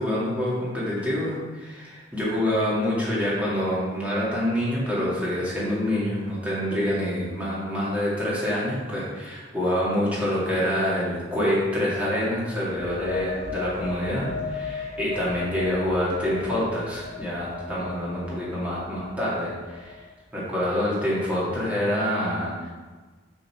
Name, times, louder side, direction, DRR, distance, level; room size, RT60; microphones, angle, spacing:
voice 1, 0.0-20.0 20.3-22.7, left 1 dB, 10° right, -8 dB, 2.3 m, -26 dB
sound 1, 12.7-20.2, left 5 dB, 35° left, 0.9 m, -37 dB
6.6 x 5.9 x 4.4 m, 1.4 s
head